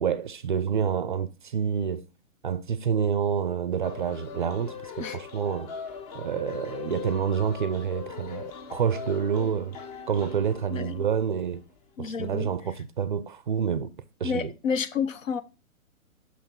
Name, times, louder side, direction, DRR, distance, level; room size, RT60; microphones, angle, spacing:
voice 1, 0.0-2.1 2.4-5.7 6.1-9.8 10.1-11.6 12.0-13.9 14.2-14.5, right 7 dB, 35° right, 0.4 m, -28 dB
sound 1, 3.8-11.6, left 7 dB, 25° left, 0.9 m, -41 dB
voice 2, 10.7-11.0 12.0-12.5 14.2-15.4, left 6 dB, 65° left, 1.0 m, -30 dB
6.2 x 5.7 x 4.2 m
figure-of-eight pair, 125°, 43 cm